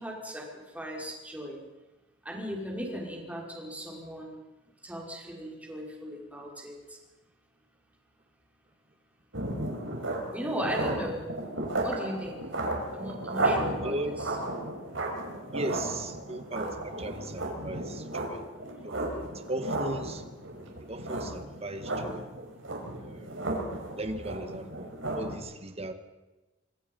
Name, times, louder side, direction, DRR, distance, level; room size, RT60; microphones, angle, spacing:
voice 1, 0.0-1.6 2.2-4.4 4.8-7.0 10.3-11.3 11.8-12.4 12.9-14.3, equal, 10° right, -1 dB, 5.3 m, -37 dB
sound 1, 9.3-25.4, right 1 dB, 90° right, 5.7 m, -34 dB
voice 2, 13.8-14.2 15.4-18.4 18.8-20.2 20.8-22.3 23.0-23.3 24.0-25.9, right 1 dB, 35° right, 8 dB, 2.0 m, -37 dB
26.0 x 25.5 x 5.5 m, 1.1 s
head